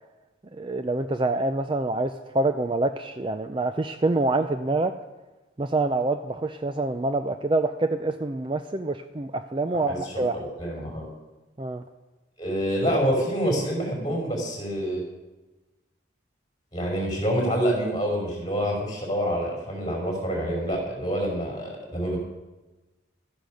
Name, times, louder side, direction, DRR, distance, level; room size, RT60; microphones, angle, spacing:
voice 1, 0.5-4.9 5.6-10.4 11.6-11.8, right 2 dB, 25° right, 9 dB, 0.4 m, -26 dB
voice 2, 9.7-11.1 12.4-15.0 16.7-22.2, equal, 20° left, -1 dB, 5.2 m, -27 dB
13.5 x 10.5 x 6.4 m, 1.1 s
head